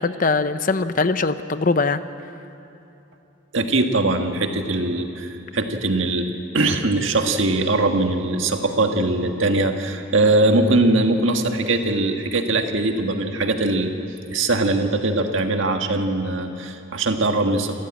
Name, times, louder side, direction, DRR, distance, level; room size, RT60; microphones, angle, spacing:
voice 1, 0.0-2.0, left 4 dB, 40° left, 12 dB, 0.6 m, -21 dB
voice 2, 3.5-13.9 14.3-17.8, right 2 dB, 70° right, 5 dB, 1.7 m, -21 dB
27.5 x 14.0 x 8.9 m, 2.8 s
head